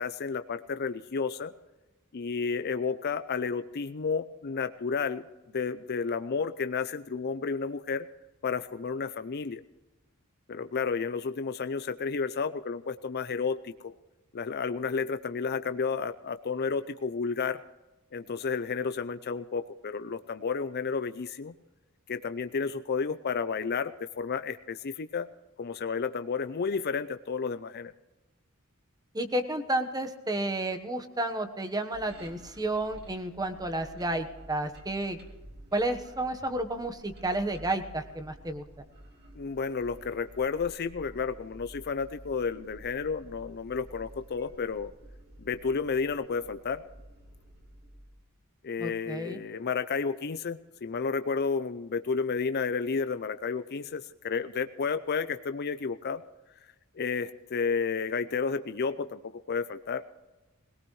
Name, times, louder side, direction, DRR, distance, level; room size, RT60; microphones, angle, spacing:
voice 1, 0.0-1.5 2.1-5.2 5.5-8.0 8.4-9.6 10.5-13.9 14.3-17.6 18.1-21.5 22.1-25.3 25.6-27.9 39.4-44.9 45.4-46.8 48.6-56.2 56.9-60.0, left 5 dB, 45° left, 10 dB, 0.5 m, -31 dB
voice 2, 29.1-35.2 35.7-38.6 48.8-49.4, right 1 dB, 20° right, 7 dB, 1.2 m, -31 dB
sound 1, 31.9-48.2, equal, 50° right, 2.5 m, -51 dB
21.0 x 18.0 x 3.2 m, 1.1 s
head